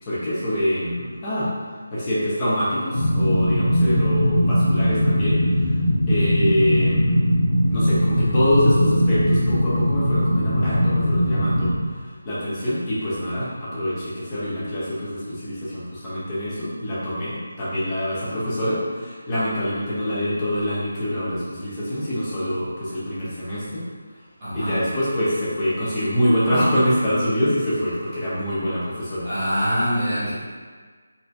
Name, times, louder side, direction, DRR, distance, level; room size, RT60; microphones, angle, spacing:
voice 1, 0.0-1.5 1.9-5.4 6.1-7.3 7.7-11.7 12.2-23.8 24.5-29.3, equal, 15° left, -10 dB, 0.7 m, -25 dB
sound 1, 2.9-11.7, equal, 60° left, 0.7 m, -20 dB
voice 2, 6.0-6.4 24.4-24.8 29.2-30.3, equal, 10° right, -15 dB, 1.2 m, -24 dB
4.1 x 2.7 x 2.5 m, 1.5 s
figure-of-eight pair, 175°, 0 cm